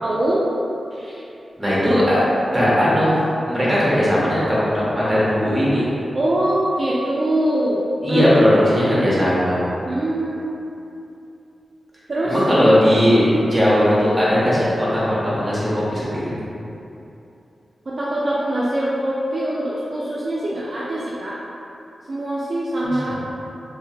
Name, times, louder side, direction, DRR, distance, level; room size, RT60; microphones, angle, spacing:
voice 1, 0.0-0.4 6.1-7.8 8.1-9.1 9.9-10.5 12.1-12.4 17.9-21.4 22.1-23.2, right 1 dB, 45° right, -7 dB, 0.3 m, -23 dB
voice 2, 1.6-2.2 2.5-3.1 3.5-5.9 8.0-9.6 12.2-15.0 15.4-16.3 23.0-23.1, equal, 10° right, -9 dB, 1.0 m, -18 dB
2.9 x 2.5 x 2.7 m, 2.8 s
wide cardioid pair, 95°, 0 cm